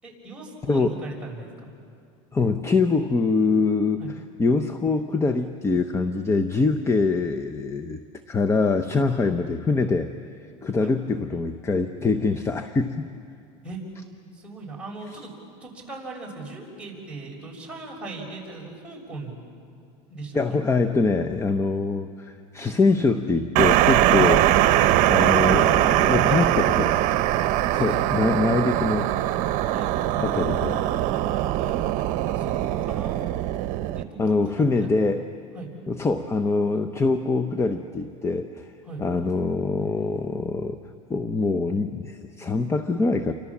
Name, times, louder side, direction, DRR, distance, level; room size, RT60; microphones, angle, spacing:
voice 1, 0.0-1.7 4.0-4.1 9.2-9.3 10.8-11.0 13.6-13.8 14.3-15.3 15.6-19.3 20.1-20.4 27.7-28.4 29.7-30.3 31.6-31.8 32.3-33.2 34.0-34.9 35.5-35.7 38.8-39.0, right 3 dB, 5° right, -3 dB, 6.6 m, -39 dB
voice 2, 2.3-4.0 4.4-8.0 8.3-10.1 10.6-13.0 20.3-24.5 25.1-26.9 27.7-29.1 30.2-30.8 34.2-35.2 35.9-38.7 39.0-40.8 41.1-43.3, left 3 dB, 15° left, 8 dB, 1.0 m, -24 dB
sound 1, 23.6-34.0, right 13 dB, 55° right, 1.0 m, -21 dB
29.0 x 25.5 x 7.4 m, 2.4 s
supercardioid pair, 125°, 16 cm